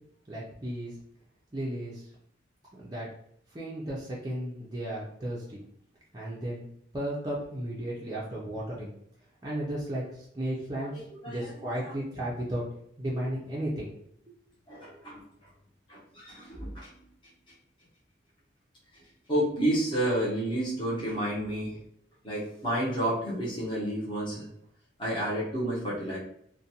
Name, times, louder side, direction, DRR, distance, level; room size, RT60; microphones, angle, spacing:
voice 1, 0.3-0.9 1.5-2.1 2.8-3.1 3.5-5.6 6.1-6.6 6.9-8.9 9.4-12.7 13.0-13.9 14.3-14.4, right 1 dB, 20° right, -6 dB, 0.4 m, -34 dB
voice 2, 10.8-12.0 14.7-15.5 15.9-17.1 19.0-21.8 22.2-24.5 25.0-26.2, right 1 dB, 25° left, -8 dB, 0.8 m, -31 dB
2.5 x 2.1 x 2.7 m, 0.69 s
head